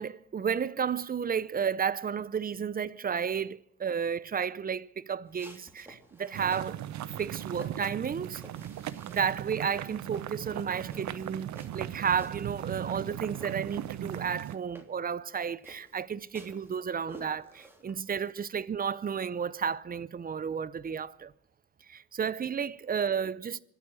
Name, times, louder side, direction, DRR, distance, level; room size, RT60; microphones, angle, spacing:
voice 1, 0.0-6.8 7.2-8.4 9.1-21.3 21.9-23.6, right 7 dB, 30° right, 0.5 m, -32 dB
sound 1, 5.3-6.7 7.2-9.5 9.8-13.1 13.3-18.5, right 1 dB, 10° right, 3.2 m, -52 dB
sound 2, 6.3-14.6, right 11 dB, 70° right, 0.7 m, -38 dB
25.0 x 8.4 x 6.2 m
cardioid pair, 90°, 30 cm